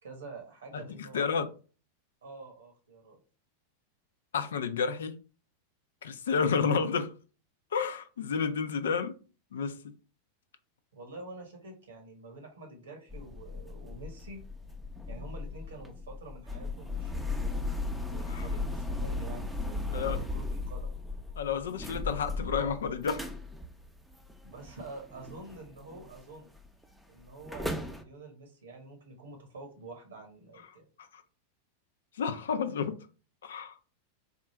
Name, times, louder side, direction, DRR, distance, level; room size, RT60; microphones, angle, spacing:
voice 1, 0.0-1.3 2.2-3.2 10.9-14.4 15.1-17.6 18.0-21.0 24.4-26.5 27.1-30.9, right 2 dB, 85° right, 1.1 m, -47 dB
voice 2, 0.7-1.5 4.3-5.2 6.0-7.1 7.7-9.1 9.5-9.8 18.3-18.5 19.9-20.2 21.4-23.3 31.1-31.2 32.2-33.0 33.4-33.8, left 6 dB, 75° left, 0.5 m, -30 dB
sound 1, 13.1-26.2 26.5-26.8 27.3-28.0, left 3 dB, ahead, 0.6 m, -37 dB
3.6 x 2.5 x 4.3 m
hypercardioid pair, 95°, 0 cm